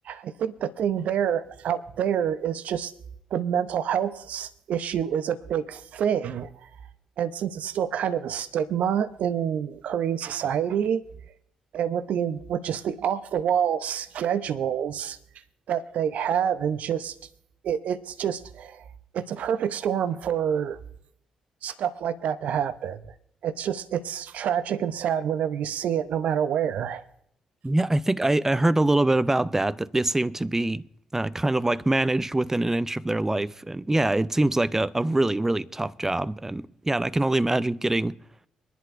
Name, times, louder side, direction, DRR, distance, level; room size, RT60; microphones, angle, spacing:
voice 1, 0.1-2.9 3.3-6.5 7.2-11.0 11.7-15.2 15.7-17.1 17.6-18.8 19.1-20.8 21.6-23.0 23.4-27.0, right 9 dB, 60° right, 0.7 m, -27 dB
voice 2, 27.6-30.8 31.1-38.2, right 2 dB, 15° right, 0.6 m, -24 dB
24.5 x 11.0 x 2.5 m
figure-of-eight pair, 45°, 3 cm